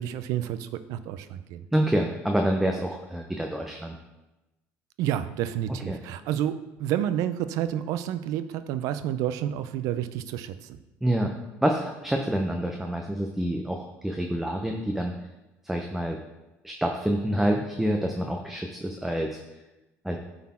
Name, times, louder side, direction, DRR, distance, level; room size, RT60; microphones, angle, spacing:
voice 1, 0.0-1.6 5.0-10.8, right 11 dB, 75° right, 12 dB, 0.5 m, -30 dB
voice 2, 1.7-4.0 5.9-6.0 11.0-11.3 11.6-15.1 15.6-16.2 16.6-19.4 20.0-20.2, right 1 dB, 5° right, 2 dB, 0.6 m, -27 dB
9.3 x 4.2 x 4.3 m, 1.0 s
cardioid pair, 120°, 6 cm